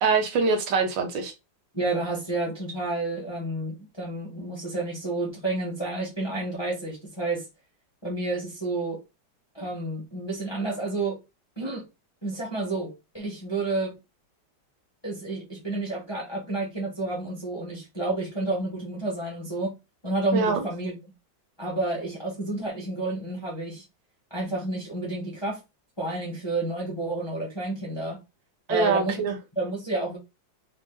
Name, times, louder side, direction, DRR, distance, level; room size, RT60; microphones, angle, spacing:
voice 1, 0.0-1.3 20.3-20.6 28.7-29.4, right 4 dB, 75° right, 1.5 m, -24 dB
voice 2, 1.7-7.4 8.0-9.0 9.5-11.2 11.6-11.8 12.2-13.9 15.0-19.7 20.0-21.0 21.6-23.8 24.3-25.6 26.0-28.2 28.7-29.3 29.6-30.2, right 2 dB, 15° left, 0.9 m, -30 dB
3.6 x 2.5 x 3.7 m
omnidirectional pair, 2.1 m